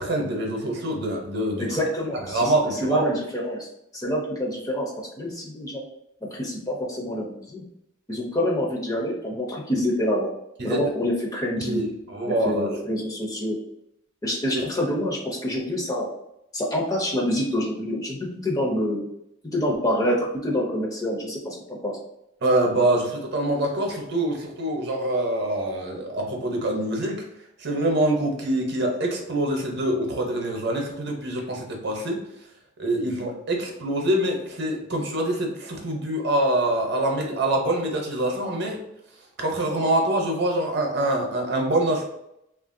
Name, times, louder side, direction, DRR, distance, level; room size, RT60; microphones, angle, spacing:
voice 1, 0.0-1.8 2.3-3.1 10.6-10.8 11.6-12.7 14.5-14.6 22.4-27.2 27.6-32.2 32.8-38.8 39.4-42.1, right 1 dB, 55° right, 1 dB, 0.7 m, -25 dB
voice 2, 1.6-3.7 3.9-4.9 5.2-5.8 6.3-7.6 8.1-10.3 10.6-11.9 12.4-13.6 14.2-16.1 16.5-19.1 19.5-22.0, equal, 15° left, -1 dB, 0.4 m, -26 dB
3.1 x 2.4 x 2.5 m, 0.80 s
head